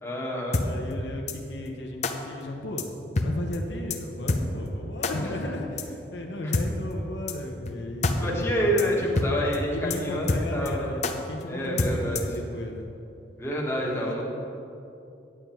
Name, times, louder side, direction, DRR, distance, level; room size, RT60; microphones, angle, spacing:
voice 1, 0.0-0.6 6.4-6.5 8.2-10.9 11.5-12.2 13.4-14.2, equal, 15° left, -3 dB, 1.5 m, -28 dB
sound 1, 0.5-0.7 1.3-1.4 2.0-2.1 2.8-2.9 3.2-3.3 3.5-3.6 3.9-4.0 4.3-4.4 5.0-5.1 5.8-5.9 6.5-6.7 7.3-7.4 7.7-7.8 8.0-8.2 8.4-8.5 8.8-8.9 9.2-9.3 9.5-9.6 9.9-10.0 10.3-10.7 11.0-11.1 11.8-12.4, left 3 dB, 40° left, 0.7 m, -26 dB
voice 2, 0.6-2.9 3.2-9.1 9.7-12.9 13.8-14.2, left 1 dB, 75° left, 1 dB, 0.9 m, -35 dB
9.0 x 8.8 x 4.5 m, 2.8 s
head